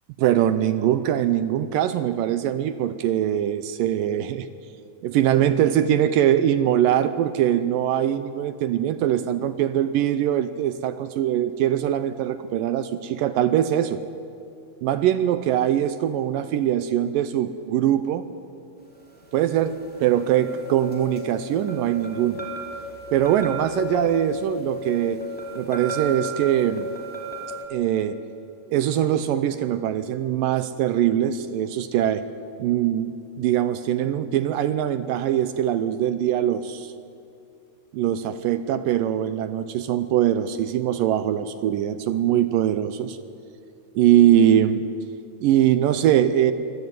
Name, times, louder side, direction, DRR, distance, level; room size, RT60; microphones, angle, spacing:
voice 1, 0.2-4.5 5.0-14.0 14.8-18.3 19.3-19.8 20.0-22.5 23.1-25.2 25.6-26.9 27.7-28.2 28.7-32.2 32.6-36.9 37.9-43.2 44.0-44.9 45.4-46.5, right 11 dB, 75° right, 12 dB, 2.2 m, -22 dB
sound 1, 19.3-27.7, left 1 dB, 5° left, 3.0 m, -34 dB
23.5 x 17.5 x 9.3 m, 2.5 s
omnidirectional pair, 4.3 m